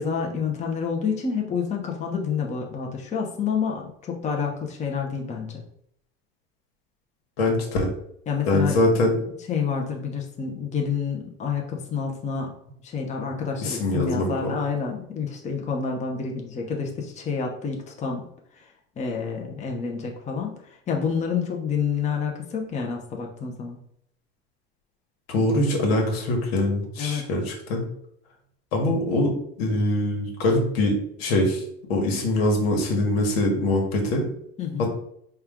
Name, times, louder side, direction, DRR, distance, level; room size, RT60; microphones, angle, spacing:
voice 1, 0.0-5.6 8.3-8.8 9.5-12.5 12.8-18.3 18.5-23.8 27.0-27.3 34.6-34.9, left 6 dB, 25° left, 1 dB, 0.7 m, -28 dB
voice 2, 7.4-7.9 8.5-9.2 13.6-14.3 25.3-27.8 28.7-31.6 31.9-34.2 34.8-34.9, left 1 dB, 85° left, 1 dB, 1.3 m, -23 dB
4.4 x 2.4 x 3.6 m, 0.72 s
supercardioid pair, 115°, 29 cm